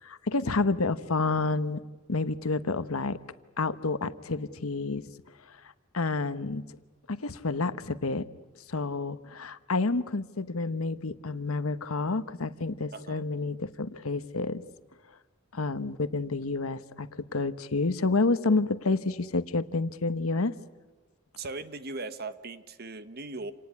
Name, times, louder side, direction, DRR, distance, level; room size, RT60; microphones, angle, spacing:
voice 1, 0.0-1.8 2.1-3.2 3.6-5.1 5.5-5.6 5.9-6.6 7.1-8.2 8.7-14.6 15.5-20.5, left 3 dB, 85° left, 13 dB, 1.1 m, -29 dB
voice 2, 12.9-13.2 21.4-23.5, right 3 dB, 45° right, 12 dB, 1.3 m, -38 dB
28.0 x 19.0 x 9.9 m, 1.2 s
head